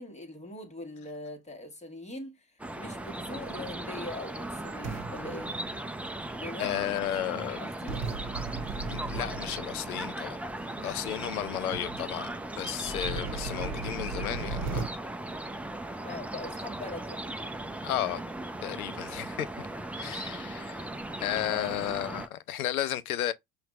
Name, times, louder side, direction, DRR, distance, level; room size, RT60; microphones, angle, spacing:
voice 1, 0.0-5.5 6.4-6.8 7.2-8.0 16.0-17.3 21.5-21.8, left 2 dB, 15° left, 1.5 m, -41 dB
sound 1, 2.6-22.3, right 1 dB, 5° right, 0.5 m, -38 dB
sound 2, 3.3-4.0 4.8-6.1 7.9-10.0 10.8-10.9 11.4-11.5 11.7-12.0 12.8-14.9, right 4 dB, 40° right, 1.3 m, -37 dB
voice 2, 6.6-7.6 8.9-10.4 10.8-12.3 12.6-14.8 17.8-18.2 18.6-19.5 20.0-20.9 21.2-23.3, left 12 dB, 85° left, 0.6 m, -33 dB
5.8 x 2.5 x 3.1 m
hypercardioid pair, 75°, 42 cm